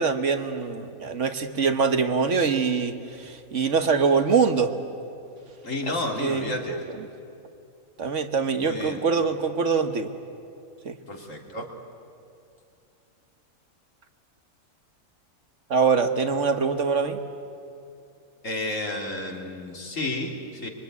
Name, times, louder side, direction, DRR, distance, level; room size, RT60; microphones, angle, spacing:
voice 1, 0.0-4.7 5.9-7.1 8.0-10.1 10.8-11.0 15.7-17.2, right 5 dB, 60° right, 8 dB, 1.6 m, -24 dB
voice 2, 5.6-6.8 8.6-9.0 11.1-11.7 18.4-20.7, left 2 dB, 65° left, 2 dB, 3.2 m, -31 dB
25.0 x 23.0 x 9.5 m, 2.6 s
omnidirectional pair, 1.4 m